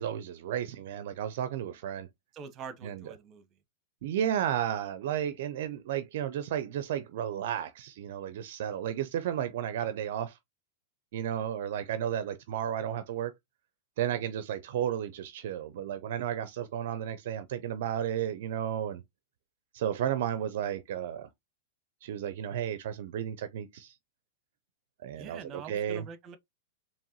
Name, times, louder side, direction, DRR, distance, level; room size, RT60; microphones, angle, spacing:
voice 1, 0.0-2.1 2.8-3.1 4.0-10.4 11.1-13.3 14.0-19.0 19.7-21.3 22.0-23.9 25.0-26.1, right 10 dB, 65° right, 0.4 m, -33 dB
voice 2, 2.3-3.4 25.2-26.4, right 6 dB, 35° right, 0.9 m, -44 dB
4.5 x 2.9 x 2.9 m
hypercardioid pair, 115°, 0 cm